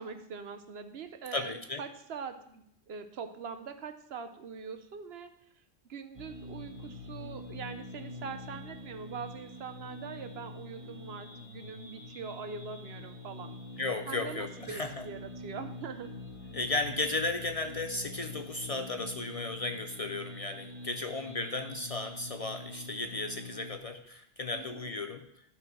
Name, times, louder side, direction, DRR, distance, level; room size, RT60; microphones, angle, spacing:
voice 1, 0.0-5.3 5.9-13.5 14.1-16.2 24.5-25.0, right 6 dB, 60° right, 9 dB, 1.0 m, -43 dB
voice 2, 1.3-1.8 13.8-15.1 16.5-25.3, left 3 dB, 55° left, 7 dB, 0.4 m, -35 dB
sound 1, 6.1-23.8, left 2 dB, 25° right, 1.6 m, -45 dB
11.5 x 4.4 x 6.0 m, 0.73 s
omnidirectional pair, 1.2 m